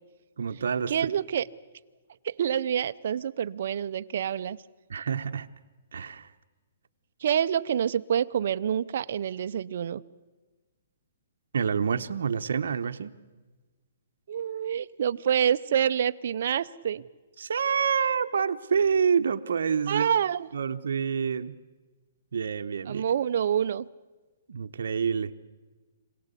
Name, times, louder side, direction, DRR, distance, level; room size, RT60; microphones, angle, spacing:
voice 1, 0.4-0.9 4.9-5.5 5.9-6.3 11.5-13.1 17.4-20.1 20.5-21.6 22.3-23.1 24.5-25.3, right 6 dB, 75° right, 7 dB, 1.0 m, -27 dB
voice 2, 0.9-1.5 2.2-4.6 7.2-10.0 14.3-17.0 19.9-20.5 22.9-23.9, right 9 dB, 50° right, 12 dB, 0.6 m, -27 dB
25.5 x 17.5 x 8.3 m, 1.3 s
hypercardioid pair, 170°, 0 cm